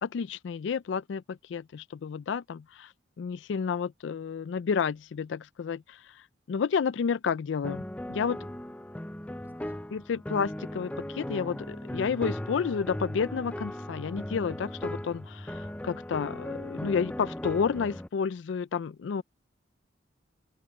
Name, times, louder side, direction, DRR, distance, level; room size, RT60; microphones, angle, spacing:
voice 1, 0.0-2.9 3.2-6.2 6.5-7.8 8.1-8.4 9.9-19.2, left 6 dB, 75° left, 0.4 m, -31 dB
sound 1, 7.6-18.1, left 1 dB, 5° left, 0.5 m, -37 dB
voice 2, 8.9-9.8 19.0-19.2, right 1 dB, 10° right, 3.9 m, -71 dB
head